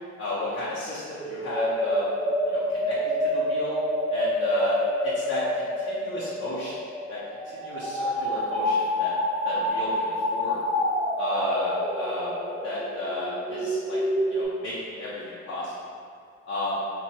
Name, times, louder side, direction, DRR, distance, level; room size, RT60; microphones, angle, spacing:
voice 1, 0.2-2.1 2.5-3.0 3.3-3.8 4.1-6.8 7.1-7.2 7.5-9.1 9.4-10.6 11.2-12.3 12.6-14.0 14.3-15.8 16.5-16.8, left 2 dB, 50° left, -8 dB, 0.7 m, -33 dB
sound 1, 1.2-14.4, left 1 dB, ahead, 0.5 m, -28 dB
4.4 x 2.2 x 2.8 m, 2.2 s
cardioid pair, 90°, 30 cm